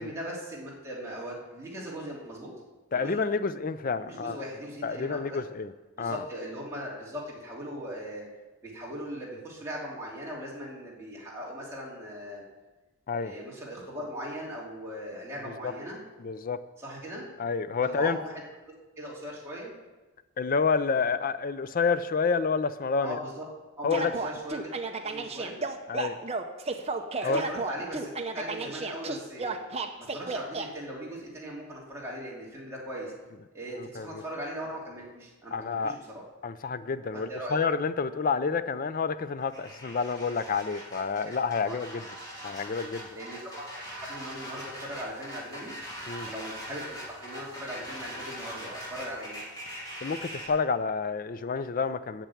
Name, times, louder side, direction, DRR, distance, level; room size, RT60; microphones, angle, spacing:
voice 1, 0.0-2.5 2.9-3.2 4.0-5.4 6.0-8.2 8.6-12.4 13.2-16.0 16.8-17.3 17.8-18.3 18.7-19.7 23.0-23.4 23.8-24.7 25.0-25.6 27.2-29.5 30.1-33.1 33.5-36.2 37.1-37.6 41.6-41.8 43.1-45.8 46.3-49.4, equal, 10° right, -6 dB, 2.8 m, -39 dB
voice 2, 2.9-4.4 4.8-5.7 6.0-6.2 13.1-13.3 15.6-15.7 16.2-16.6 17.4-18.2 20.4-23.2 23.8-24.1 25.9-26.2 27.2-27.4 33.8-34.2 35.5-36.0 36.4-42.0 42.4-43.1 46.1-46.3 50.0-52.3, left 5 dB, 40° left, 13 dB, 0.4 m, -29 dB
sound 1, 23.9-30.7, right 3 dB, 30° right, 0.7 m, -33 dB
sound 2, 39.4-50.5, equal, 15° left, 2.6 m, -42 dB
9.0 x 6.8 x 8.4 m, 1.2 s
head